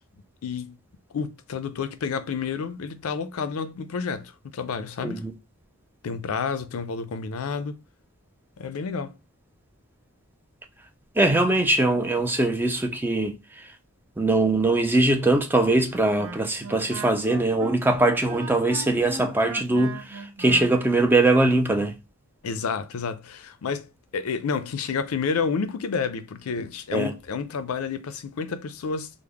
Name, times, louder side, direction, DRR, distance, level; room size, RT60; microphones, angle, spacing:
voice 1, 0.4-0.8 1.1-5.3 6.0-7.8 8.6-9.1 22.4-29.1, left 5 dB, 75° left, 0.4 m, -30 dB
voice 2, 11.2-13.4 14.2-22.0 26.9-27.1, right 2 dB, 10° right, 0.3 m, -22 dB
Wind instrument woodwind instrument, 15.9-21.2, right 3 dB, 70° right, 0.5 m, -38 dB
3.5 x 2.0 x 3.3 m
head